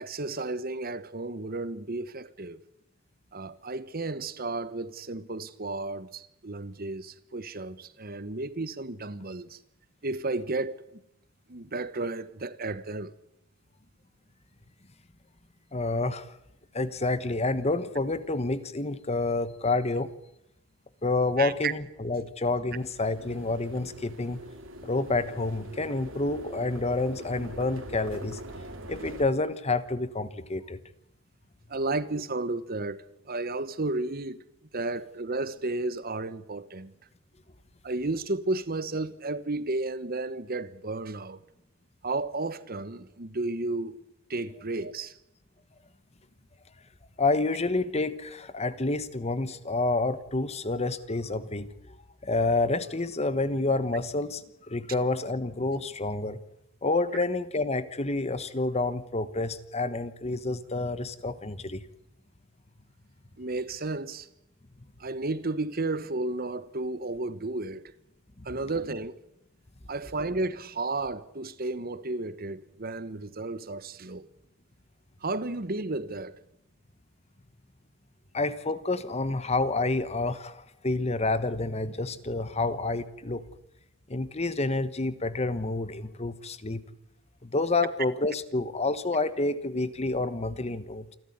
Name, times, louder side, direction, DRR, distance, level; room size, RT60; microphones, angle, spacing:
voice 1, 0.0-2.6 3.3-9.6 10.0-11.0 11.5-13.1 21.4-21.7 31.7-34.4 34.7-36.9 37.8-41.4 42.0-44.0 44.3-45.1 63.4-64.3 65.0-67.9 68.4-69.2 69.9-74.3 75.2-76.4, right 2 dB, 50° right, 1.3 m, -33 dB
voice 2, 15.7-16.3 16.7-20.1 21.0-24.4 24.8-28.4 28.9-30.8 47.2-51.7 52.2-56.4 56.8-61.8 68.4-68.5 78.3-83.4 84.1-86.8 87.4-91.1, left 2 dB, 30° left, 1.1 m, -28 dB
sound 1, 22.7-29.3, right 1 dB, 75° right, 3.0 m, -43 dB
28.0 x 13.0 x 9.5 m
head